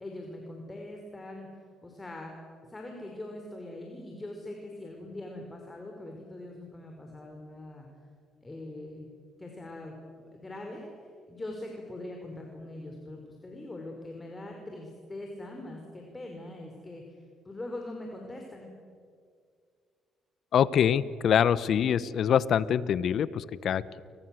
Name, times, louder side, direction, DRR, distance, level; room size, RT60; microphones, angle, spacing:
voice 1, 0.0-1.5 1.8-2.4 2.7-7.9 8.4-9.1 9.4-10.0 10.3-18.7, left 1 dB, 25° left, 1 dB, 5.4 m, -42 dB
voice 2, 20.5-24.0, left 8 dB, 60° left, 18 dB, 1.0 m, -25 dB
30.0 x 24.0 x 7.9 m, 2.2 s
hypercardioid pair, 50°, 0 cm